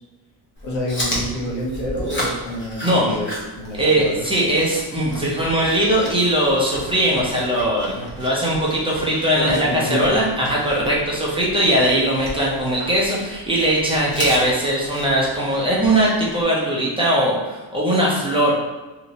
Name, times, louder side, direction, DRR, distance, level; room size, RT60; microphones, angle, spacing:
voice 1, 0.6-3.3 3.6-4.3 9.3-10.2, left 1 dB, 90° left, -2 dB, 1.0 m, -27 dB
Chewing mastication, 0.6-16.4, equal, 25° left, 0.9 m, -34 dB
voice 2, 3.8-18.5, right 1 dB, 10° right, -5 dB, 0.6 m, -20 dB
3.0 x 2.8 x 2.7 m, 1.2 s
cardioid pair, 125°, 45 cm